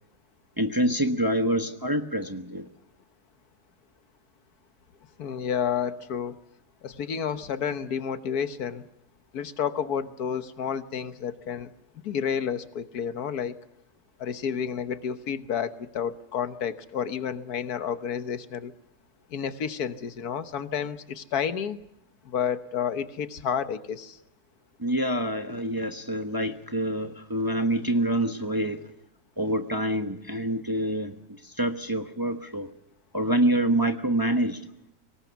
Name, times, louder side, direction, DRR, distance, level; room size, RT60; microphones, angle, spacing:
voice 1, 0.6-2.7 24.8-28.9 29.4-32.7 33.1-34.6, right 1 dB, 15° right, 6 dB, 1.0 m, -26 dB
voice 2, 5.2-6.4 6.8-8.8 9.3-11.7 12.0-13.6 14.2-18.7 19.3-21.8 22.2-24.2, left 7 dB, 75° left, 11 dB, 1.6 m, -30 dB
24.0 x 19.0 x 7.0 m, 0.80 s
omnidirectional pair, 1.6 m